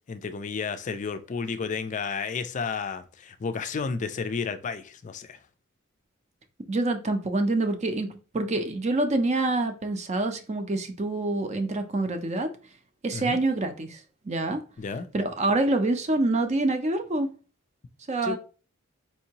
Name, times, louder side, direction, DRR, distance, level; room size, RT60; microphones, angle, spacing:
voice 1, 0.1-5.4 13.1-13.4 14.8-15.1 18.2-18.4, left 5 dB, 35° left, 0.4 m, -32 dB
voice 2, 6.7-12.5 13.0-14.6 15.1-17.3 18.1-18.4, right 2 dB, 35° right, 0.5 m, -26 dB
4.5 x 2.7 x 2.8 m
head